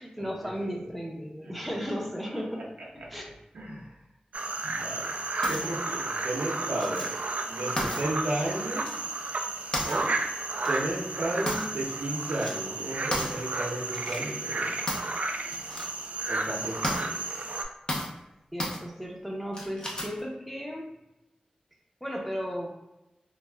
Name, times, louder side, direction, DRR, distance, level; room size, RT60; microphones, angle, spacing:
voice 1, 0.0-2.7 3.1-3.2 18.5-20.9 22.0-22.7, equal, ahead, -2 dB, 0.7 m, -35 dB
voice 2, 3.5-3.9 4.6-5.2 5.5-7.1 7.4-8.9 9.8-10.1 10.7-14.7 16.3-17.5, right 1 dB, 85° right, -3 dB, 0.7 m, -33 dB
sound 1, 4.3-17.6, right 3 dB, 60° right, 0.3 m, -32 dB
sound 2, 5.4-5.7 6.8-7.2 7.8-8.0 8.8-9.0 9.7-10.0 10.6-10.8 11.5-11.9 12.2-12.5 13.1-13.4 13.9-14.2 14.9-15.1 15.5-15.9 16.3-16.4 16.8-17.0 17.9-18.2 18.6-18.8 19.5-20.2, left 1 dB, 35° left, 0.7 m, -33 dB
3.2 x 2.3 x 2.3 m, 0.91 s
cardioid pair, 50°, 3 cm